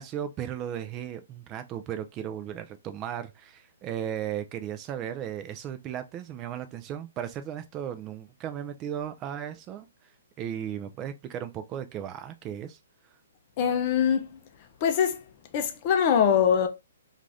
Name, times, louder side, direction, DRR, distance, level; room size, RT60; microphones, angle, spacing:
voice 1, 0.0-9.9 10.4-12.8, right 10 dB, 25° right, 0.3 m, -36 dB
voice 2, 13.6-14.4 14.8-15.2 15.5-16.7, left 8 dB, 35° left, 0.5 m, -23 dB
2.5 x 2.4 x 3.2 m
hypercardioid pair, 150°, 0 cm